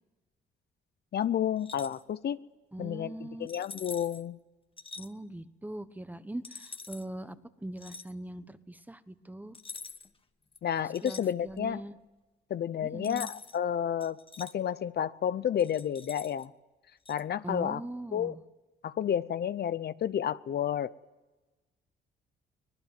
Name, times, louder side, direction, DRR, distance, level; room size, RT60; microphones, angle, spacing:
voice 1, 1.1-2.4 2.8-4.4 10.6-11.8 12.5-16.5 17.1-17.8 18.1-18.4 18.8-20.9, left 9 dB, 55° left, 14 dB, 0.7 m, -31 dB
sound 1, 1.6-2.0 3.5-4.2 4.8-5.1 6.4-7.1 7.8-8.1 9.5-10.2 10.5-11.7 13.0-13.6 14.0-14.5 15.6-16.5 17.1-17.2, left 4 dB, 25° left, 1.3 m, -45 dB
voice 2, 2.7-3.5 5.0-9.6 11.0-11.9 12.8-13.3 17.4-18.4, right 1 dB, 10° right, 12 dB, 1.2 m, -41 dB
24.0 x 19.5 x 9.4 m, 1.1 s
cardioid pair, 90°, 20 cm